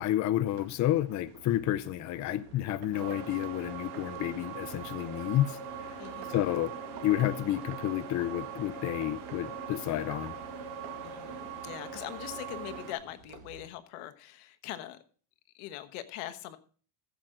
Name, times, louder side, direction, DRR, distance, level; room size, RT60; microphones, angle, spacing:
voice 1, 0.0-5.6 6.3-6.7 7.0-10.4, left 13 dB, 35° left, 0.6 m, -30 dB
sound 1, 0.5-13.7, right 9 dB, 85° right, 2.2 m, -52 dB
sound 2, 2.9-12.9, right 6 dB, 50° right, 3.3 m, -41 dB
voice 2, 6.0-6.5 11.0-15.0 15.5-16.6, left 13 dB, 85° left, 1.4 m, -42 dB
15.0 x 7.8 x 3.8 m
cardioid pair, 150°, 49 cm